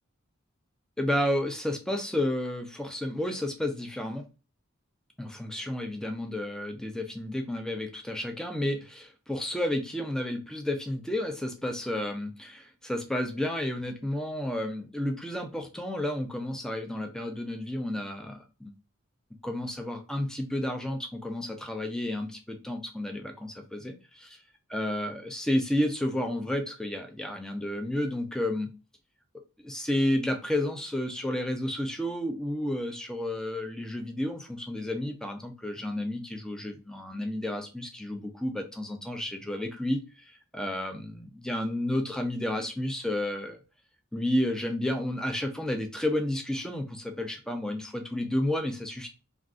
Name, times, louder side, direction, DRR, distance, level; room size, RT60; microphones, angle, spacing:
voice 1, 1.0-4.3 5.2-18.7 19.4-24.4 24.7-28.7 29.6-43.6 44.1-49.1, left 1 dB, 5° left, 4 dB, 0.4 m, -31 dB
2.4 x 2.4 x 3.6 m, 0.32 s
head